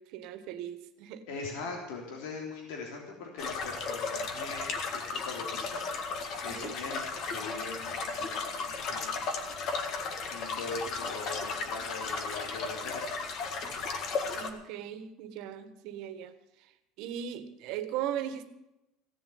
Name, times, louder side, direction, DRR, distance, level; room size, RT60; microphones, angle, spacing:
voice 1, 0.0-1.2 6.4-6.8 14.3-16.3 16.6-16.7 17.0-18.4, right 10 dB, 60° right, 11 dB, 1.5 m, -38 dB
voice 2, 1.3-5.8 6.4-9.1 10.3-13.0, left 4 dB, 80° left, 0 dB, 3.4 m, -41 dB
sound 1, 3.4-14.5, left 4 dB, 45° left, 1.9 m, -35 dB
16.5 x 7.2 x 9.5 m, 0.92 s
cardioid pair, 150°, 0 cm